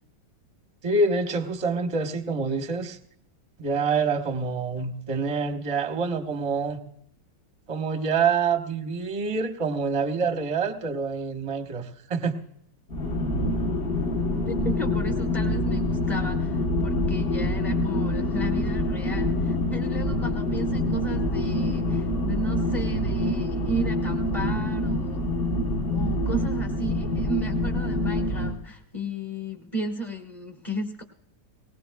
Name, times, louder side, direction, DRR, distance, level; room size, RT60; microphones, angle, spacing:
voice 1, 0.8-3.0 3.6-6.8 7.7-12.3, right 4 dB, 25° right, 6 dB, 0.8 m, -26 dB
sound 1, 12.9-28.6, left 1 dB, 40° left, 1.0 m, -26 dB
voice 2, 14.5-25.3 25.9-31.0, right 1 dB, 20° left, 1 dB, 1.2 m, -34 dB
19.5 x 19.0 x 2.3 m, 0.71 s
omnidirectional pair, 2.1 m